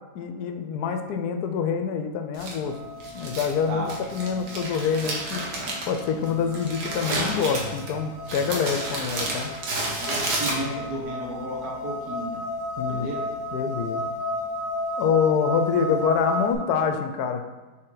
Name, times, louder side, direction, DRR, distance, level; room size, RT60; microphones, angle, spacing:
voice 1, 0.1-2.8 3.1-5.4 5.8-9.5 12.8-13.1 13.5-14.0 15.0-17.4, left 6 dB, 75° left, 6 dB, 1.1 m, -26 dB
Crumpling crinkling, 2.3-11.0, right 2 dB, 80° right, 1.7 m, -31 dB
sound 1, 2.6-16.5, left 1 dB, 20° left, 1.4 m, -34 dB
voice 2, 10.0-12.5 12.9-13.2, right 1 dB, 65° right, -2 dB, 1.7 m, -33 dB
6.5 x 4.0 x 3.8 m, 1.3 s
omnidirectional pair, 1.8 m